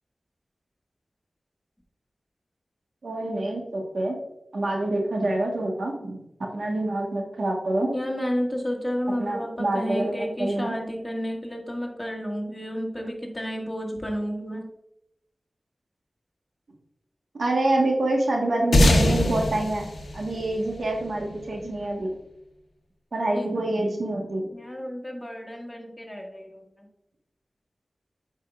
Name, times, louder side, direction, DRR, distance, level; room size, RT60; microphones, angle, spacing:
voice 1, 3.0-4.2 4.5-7.9 9.2-10.7 17.3-19.8 20.1-22.1 23.1-24.5, right 2 dB, 85° right, 0 dB, 1.3 m, -26 dB
voice 2, 7.8-14.7 23.3-23.5 24.5-26.9, equal, 20° left, 0 dB, 1.8 m, -31 dB
sound 1, 18.7-21.5, left 1 dB, 90° left, 0.9 m, -22 dB
8.2 x 5.5 x 2.4 m, 0.83 s
cardioid pair, 40°, 0 cm